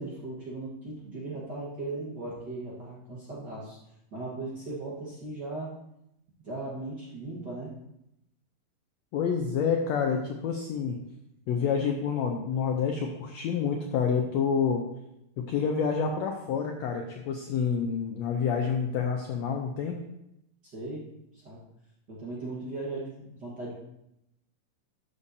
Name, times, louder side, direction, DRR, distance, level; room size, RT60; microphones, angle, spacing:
voice 1, 0.0-3.8 4.1-5.7 6.4-7.7 20.6-21.0 21.3-21.6 22.1-23.7, right 2 dB, 45° right, -6 dB, 1.4 m, -37 dB
voice 2, 9.1-11.0 11.5-14.8 15.4-20.0, left 6 dB, 85° left, 3 dB, 1.5 m, -28 dB
12.5 x 6.8 x 2.7 m, 0.83 s
omnidirectional pair, 3.8 m